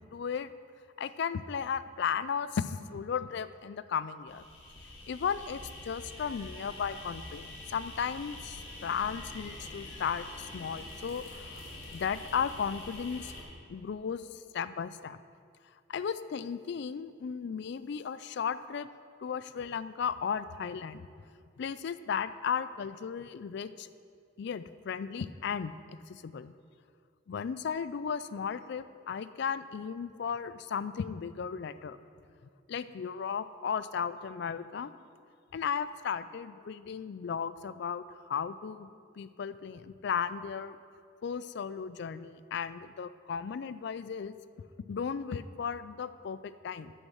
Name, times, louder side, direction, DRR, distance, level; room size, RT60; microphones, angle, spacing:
voice 1, 0.1-0.5 1.0-4.4 5.1-13.3 13.7-15.2 15.9-18.9 19.2-21.1 21.6-23.9 24.4-26.5 27.3-32.0 32.7-34.9 35.5-38.9 39.2-40.8 41.2-44.4 44.9-46.9, left 7 dB, 60° left, 14 dB, 0.3 m, -35 dB
sound 1, 4.3-13.4, left 1 dB, 85° left, 1.8 m, -45 dB
9.5 x 6.7 x 6.3 m, 2.3 s
head